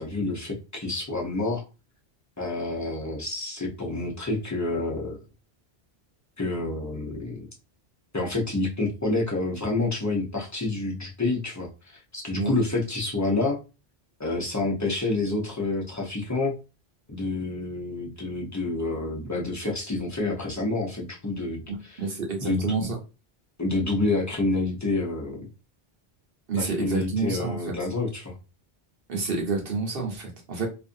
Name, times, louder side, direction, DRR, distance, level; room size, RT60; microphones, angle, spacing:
voice 1, 0.0-1.6 2.4-5.2 6.4-7.4 8.1-13.6 14.2-16.6 17.1-22.0 22.4-22.9 23.6-25.5 26.5-28.3, left 2 dB, 20° left, -1 dB, 0.5 m, -28 dB
voice 2, 12.3-12.7 22.0-23.0 26.5-27.7 29.1-30.7, right 4 dB, 60° right, 1 dB, 1.0 m, -29 dB
2.5 x 2.5 x 2.5 m, 0.30 s
omnidirectional pair, 1.1 m